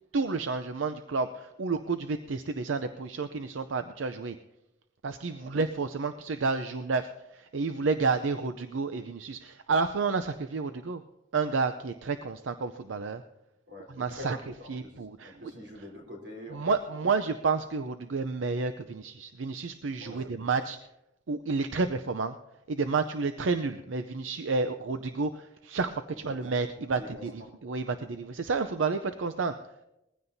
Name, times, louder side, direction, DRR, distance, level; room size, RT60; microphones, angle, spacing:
voice 1, 0.1-4.4 5.0-11.0 11.3-13.2 14.0-14.4 14.7-15.5 16.5-20.8 21.3-22.4 22.7-29.5, right 4 dB, 90° right, 10 dB, 0.6 m, -30 dB
voice 2, 13.7-16.6 20.0-20.4 26.1-26.2 27.0-27.5, left 1 dB, 65° right, 0 dB, 3.8 m, -46 dB
20.5 x 15.5 x 2.7 m, 0.90 s
head